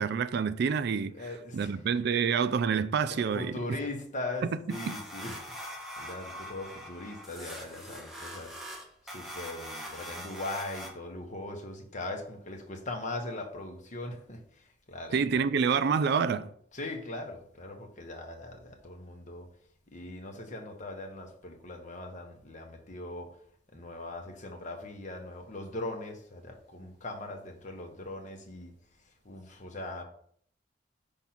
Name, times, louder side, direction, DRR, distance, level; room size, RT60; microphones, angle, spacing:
voice 1, 0.0-3.6 4.5-4.6 4.9-5.0 15.1-16.5, right 6 dB, 60° right, 0.4 m, -28 dB
voice 2, 1.2-1.7 2.1-2.2 3.1-5.4 6.0-8.6 9.1-14.4 14.9-15.1 16.7-19.5 19.9-23.3 23.7-28.7 29.2-30.0, left 2 dB, 40° left, 1.1 m, -40 dB
sound 1, 4.7-10.9, equal, ahead, 1.2 m, -42 dB
5.7 x 3.5 x 5.8 m
head